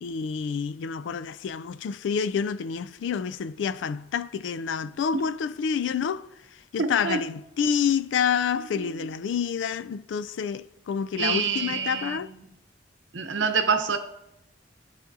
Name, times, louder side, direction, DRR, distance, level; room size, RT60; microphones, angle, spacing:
voice 1, 0.0-6.3 6.7-12.3, left 7 dB, 70° left, 0.3 m, -28 dB
voice 2, 6.8-7.2 8.8-8.9 11.2-12.5 13.1-14.0, right 5 dB, 70° right, 0.8 m, -27 dB
13.5 x 5.0 x 2.6 m
head